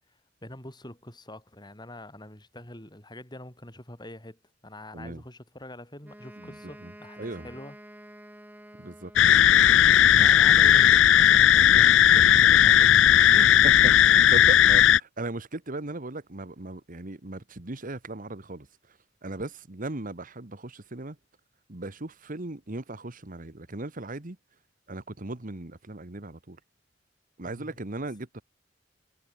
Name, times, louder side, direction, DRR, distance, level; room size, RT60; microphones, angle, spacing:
voice 1, 0.1-7.8 10.1-13.1 27.4-27.8, left 1 dB, 25° left, 5.9 m, -45 dB
Wind instrument woodwind instrument, 6.0-9.7, right 1 dB, 10° right, 6.3 m, -49 dB
voice 2, 6.4-6.9 7.2-7.5 8.8-9.1 12.1-12.4 13.3-18.7 19.2-21.2 21.7-24.4 24.9-26.6 27.4-28.4, right 2 dB, 45° right, 1.5 m, -37 dB
sound 1, 9.2-15.0, left 10 dB, 80° left, 0.4 m, -17 dB
head